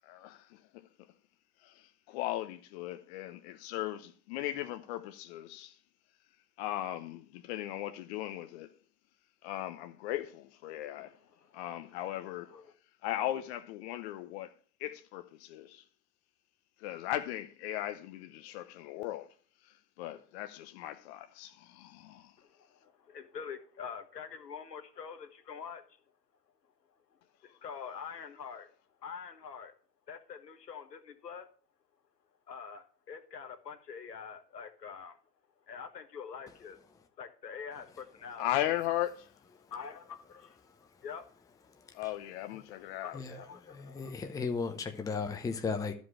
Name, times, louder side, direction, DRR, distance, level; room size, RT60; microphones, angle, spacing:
voice 1, 0.0-0.6 1.6-5.8 6.6-8.7 9.4-11.1 11.5-12.5 13.0-14.5 14.8-15.8 16.8-19.3 20.0-22.3 38.4-39.3 41.9-43.2, left 13 dB, 40° left, 0.8 m, -37 dB
voice 2, 11.0-12.2 12.5-12.7 22.4-25.8 27.4-28.7 29.0-29.7 30.1-31.5 32.5-35.2 35.7-36.8 37.2-38.5 39.7-41.3 43.0-44.2, left 6 dB, 80° left, 1.6 m, -45 dB
voice 3, 41.7-42.0 43.1-45.9, left 4 dB, 5° left, 0.7 m, -36 dB
12.5 x 5.2 x 6.2 m
hypercardioid pair, 105°, 48 cm